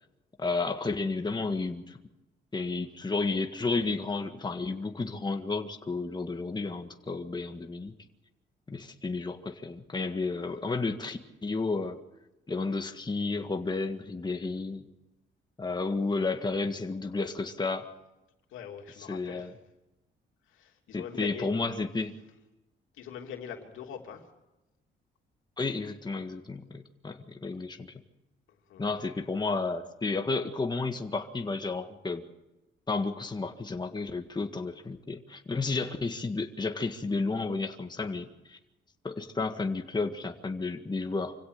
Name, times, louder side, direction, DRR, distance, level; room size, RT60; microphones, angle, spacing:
voice 1, 0.4-2.0 2.5-7.9 8.7-12.0 12.5-14.9 15.6-17.9 19.1-19.5 20.9-22.1 25.6-27.9 28.8-32.3 32.9-38.6 39.0-41.4, left 3 dB, 20° left, 5 dB, 1.8 m, -32 dB
voice 2, 18.5-19.5 20.5-21.5 22.9-24.2 28.5-28.8, left 8 dB, 85° left, 3 dB, 3.2 m, -42 dB
26.0 x 16.5 x 6.8 m, 0.98 s
cardioid pair, 90°, 20 cm